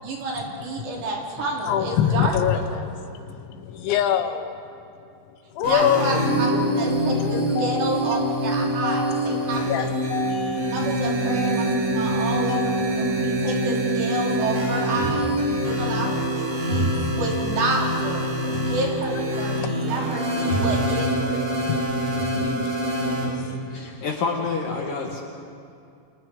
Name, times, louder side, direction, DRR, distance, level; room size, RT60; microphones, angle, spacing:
voice 1, 0.0-2.6 5.6-6.5 6.8-9.9 10.7-11.6 11.9-12.6 13.1-15.3 15.7-16.9 17.2-21.6, right 2 dB, 65° right, -2 dB, 5.0 m, -29 dB
voice 2, 1.7-4.5 5.6-6.2 6.5-8.2 8.8-10.8 11.3-12.0 12.5-13.5 16.9-17.2 21.6-22.1 22.4-22.6 23.0-23.9, left 9 dB, 80° left, 8 dB, 3.1 m, -27 dB
sound 1, 5.6-23.3, right 1 dB, 80° right, 7.2 m, -25 dB
sound 2, 14.9-15.6 16.7-17.3 18.5-18.9 19.2-19.3 20.5-21.5 21.9-22.7, right 1 dB, 20° right, 2.9 m, -30 dB
voice 3, 22.4-22.7 23.7-25.2, left 4 dB, 60° left, -1 dB, 2.4 m, -28 dB
30.0 x 26.5 x 3.7 m, 2.5 s
omnidirectional pair, 5.4 m